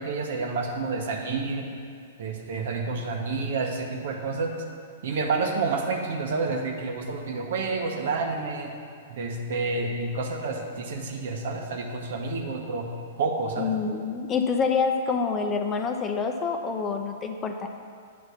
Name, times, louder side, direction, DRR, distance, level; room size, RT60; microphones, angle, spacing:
voice 1, 0.0-1.7 2.2-4.6 5.0-8.7 9.1-12.9 13.2-13.7, right 3 dB, 65° right, 2 dB, 1.0 m, -29 dB
voice 2, 13.6-17.7, left 5 dB, 25° left, 5 dB, 0.6 m, -27 dB
8.6 x 3.5 x 6.7 m, 2.2 s
hypercardioid pair, 115°, 0 cm